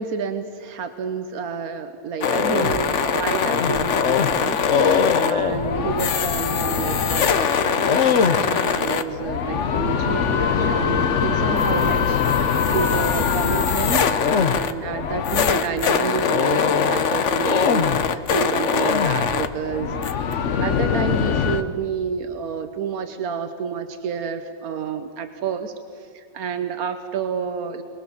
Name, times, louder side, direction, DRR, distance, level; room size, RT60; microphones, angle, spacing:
voice 1, 0.0-27.8, right 6 dB, 85° right, 8 dB, 1.5 m, -30 dB
sound 1, 2.2-21.6, left 6 dB, 60° left, 1.2 m, -21 dB
23.0 x 22.0 x 7.2 m, 2.2 s
omnidirectional pair, 1.5 m